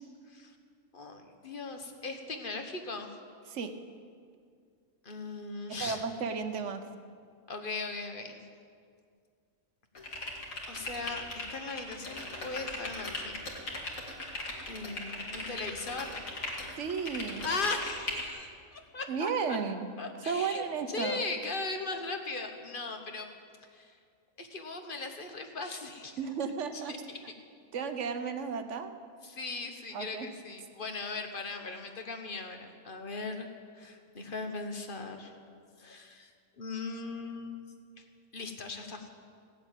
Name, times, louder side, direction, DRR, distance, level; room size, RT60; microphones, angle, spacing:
voice 1, 0.9-3.1 5.0-6.0 7.5-8.4 10.7-13.4 14.7-16.2 17.4-19.6 20.0-23.3 23.7-23.9 24.4-26.2 26.7-27.2 29.2-33.5 33.7-35.4 35.8-36.3 36.6-37.6 38.0-38.1 38.3-39.1, left 3 dB, 40° left, 5 dB, 1.3 m, -38 dB
voice 2, 5.8-6.8 16.8-17.5 19.1-19.9 20.3-21.2 26.2-27.0 27.7-28.9 29.9-30.3, right 5 dB, 60° right, 8 dB, 1.1 m, -33 dB
sound 1, 9.9-18.3, left 2 dB, 70° left, 2.4 m, -39 dB
16.0 x 7.6 x 9.0 m, 2.2 s
omnidirectional pair, 1.5 m